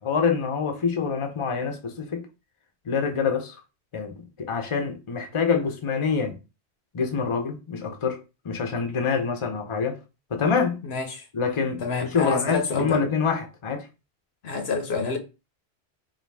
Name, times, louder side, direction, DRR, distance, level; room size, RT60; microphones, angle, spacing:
voice 1, 0.0-2.3 2.9-3.5 3.9-6.4 6.9-8.2 8.4-10.0 10.3-10.8 11.3-13.8, left 5 dB, 35° left, 0.6 m, -26 dB
voice 2, 10.8-11.3 11.8-13.0 14.4-15.2, left 4 dB, 70° left, 1.0 m, -28 dB
5.0 x 2.4 x 3.4 m
omnidirectional pair, 1.1 m